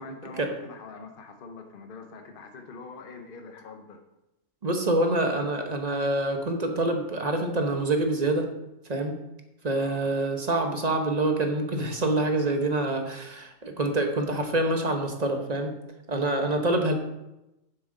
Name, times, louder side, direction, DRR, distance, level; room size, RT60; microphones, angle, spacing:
voice 1, 0.0-4.0 9.7-10.1, left 3 dB, 40° left, 5 dB, 1.0 m, -44 dB
voice 2, 4.6-8.5 8.9-9.2 9.6-15.7 16.1-16.9, right 2 dB, 30° right, 4 dB, 0.9 m, -26 dB
9.7 x 7.7 x 3.8 m, 0.93 s
omnidirectional pair, 1.6 m